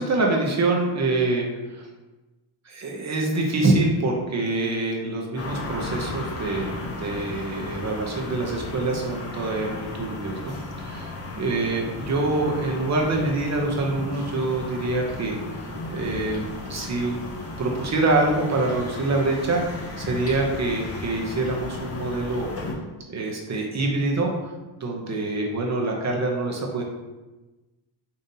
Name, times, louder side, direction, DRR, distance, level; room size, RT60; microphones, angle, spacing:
voice 1, 0.0-1.8 2.7-15.4 15.9-17.2 17.6-22.5 23.1-24.5 24.8-26.8, right 2 dB, 35° right, 0 dB, 0.6 m, -25 dB
sound 1, 5.4-22.7, left 2 dB, 30° left, 0.6 m, -35 dB
5.1 x 2.7 x 2.6 m, 1.1 s
cardioid pair, 125°, 47 cm